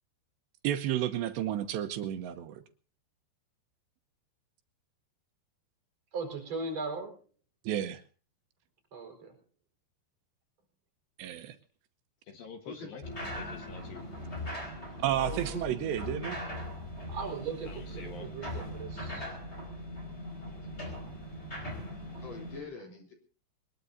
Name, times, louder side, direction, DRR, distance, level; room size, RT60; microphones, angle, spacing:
voice 1, 0.6-2.6 7.7-8.0 11.2-11.6 15.0-16.4, right 11 dB, 80° right, 9 dB, 3.1 m, -31 dB
voice 2, 6.1-7.2 8.9-9.3 17.1-19.3, right 4 dB, 40° right, 4 dB, 5.6 m, -38 dB
voice 3, 12.3-13.0 13.3-14.1 17.7-18.3, left 6 dB, 65° left, 6 dB, 2.9 m, -46 dB
sound 1, 13.0-22.6, equal, 15° left, 4.7 m, -40 dB
voice 4, 15.0-15.6 20.6-20.7 22.2-23.1, left 4 dB, 40° left, 2 dB, 4.5 m, -45 dB
22.5 x 21.0 x 2.7 m, 0.39 s
omnidirectional pair, 5.1 m